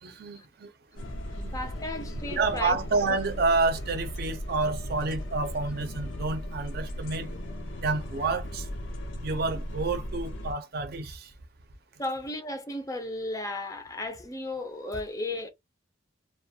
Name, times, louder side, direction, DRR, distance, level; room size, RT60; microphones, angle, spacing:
voice 1, 0.0-1.1 1.3-1.5 2.3-7.3 7.8-8.7 9.2-11.3, right 3 dB, 60° right, 0.6 m, -29 dB
sound 1, 1.0-10.5, equal, 80° left, 0.5 m, -37 dB
voice 2, 1.5-2.8 12.0-15.5, left 2 dB, 20° left, 0.4 m, -34 dB
2.4 x 2.2 x 2.7 m
head